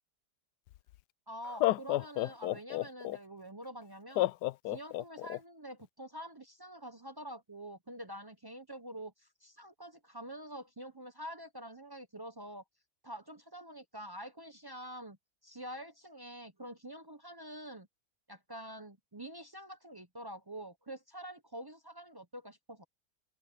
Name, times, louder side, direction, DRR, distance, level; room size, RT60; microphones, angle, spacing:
Laughter, 0.7-0.8 1.4-3.2 4.2-5.4, left 16 dB, 80° left, 1.1 m, -31 dB
voice 1, 1.3-4.3 4.7-12.6 13.0-15.2 15.4-17.9 18.3-22.8, right 1 dB, 35° right, 0.4 m, -46 dB
open air
omnidirectional pair, 1.8 m